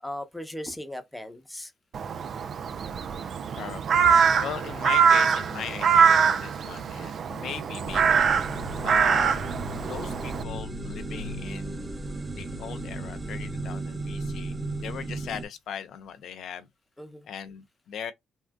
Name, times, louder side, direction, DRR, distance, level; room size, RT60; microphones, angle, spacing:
voice 1, 0.0-1.7 17.0-17.3, left 1 dB, 10° left, 0.8 m, -37 dB
Crow, 1.9-10.4, right 6 dB, 55° right, 0.4 m, -23 dB
voice 2, 3.6-8.3 8.8-9.4 9.8-11.9 12.3-14.5 14.8-16.7 17.3-18.1, left 8 dB, 75° left, 0.5 m, -38 dB
sound 1, 7.9-15.4, right 2 dB, 30° right, 0.8 m, -35 dB
3.4 x 2.5 x 2.2 m
cardioid pair, 90°, 0 cm